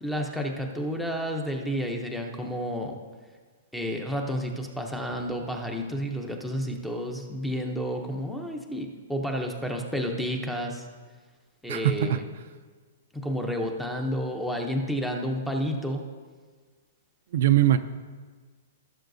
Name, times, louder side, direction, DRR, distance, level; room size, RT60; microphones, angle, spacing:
voice 1, 0.0-3.0 3.7-10.9 11.6-12.2 13.1-16.0, equal, ahead, 3 dB, 0.6 m, -31 dB
voice 2, 11.7-12.2 17.3-17.8, right 12 dB, 50° right, 9 dB, 0.4 m, -21 dB
16.5 x 7.0 x 2.6 m, 1.5 s
hypercardioid pair, 175°, 0 cm